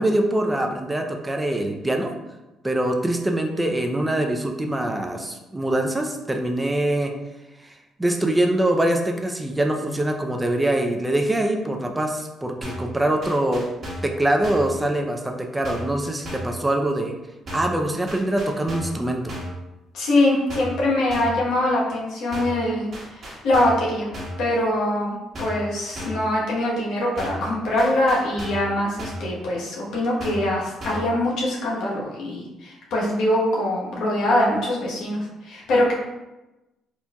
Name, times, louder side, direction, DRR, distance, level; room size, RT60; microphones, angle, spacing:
voice 1, 0.0-2.1 2.6-7.1 8.0-13.6 14.0-17.1 17.5-19.4, right 1 dB, 15° right, 3 dB, 0.5 m, -23 dB
sound 1, 12.6-12.9 13.2-14.1 14.4-14.8 15.6-16.0 16.2-16.6 17.5-17.8 18.1-19.0 19.3-19.6 20.5-20.8 21.1-21.4 22.3-22.6 22.9-23.9 24.1-24.5 25.3-25.7 26.0-26.3 27.2-27.5 27.8-28.7 29.0-29.3 30.2-30.5 30.8-31.1, equal, 50° right, 1.3 m, -34 dB
voice 2, 19.9-24.1 24.4-35.9, left 1 dB, 75° left, -4 dB, 1.1 m, -23 dB
4.4 x 2.6 x 2.3 m, 1.0 s
supercardioid pair, 75°, 0 cm